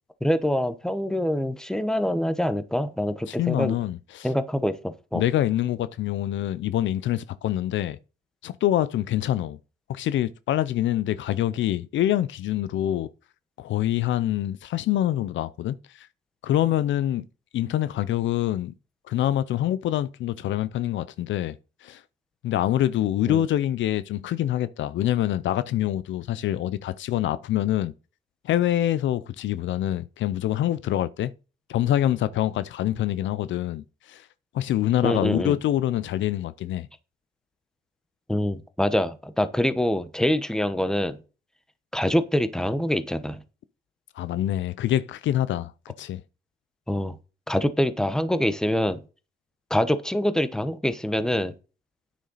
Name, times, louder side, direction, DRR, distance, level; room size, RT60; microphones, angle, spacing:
voice 1, 0.2-3.7 4.2-5.2 23.3-23.5 35.0-35.5 38.3-41.2 41.9-43.4 46.9-47.2 47.5-49.0 49.7-51.5, left 1 dB, 5° left, 1.0 m, -25 dB
voice 2, 3.3-4.3 5.1-8.0 8.4-9.6 9.9-13.1 13.6-16.1 16.4-17.2 17.5-18.7 19.1-21.6 21.8-22.0 22.4-27.9 28.4-31.3 31.7-34.3 34.5-36.9 44.2-45.7 46.0-46.2, left 12 dB, 70° left, 0.5 m, -25 dB
9.5 x 6.4 x 4.1 m
cardioid pair, 90°, 20 cm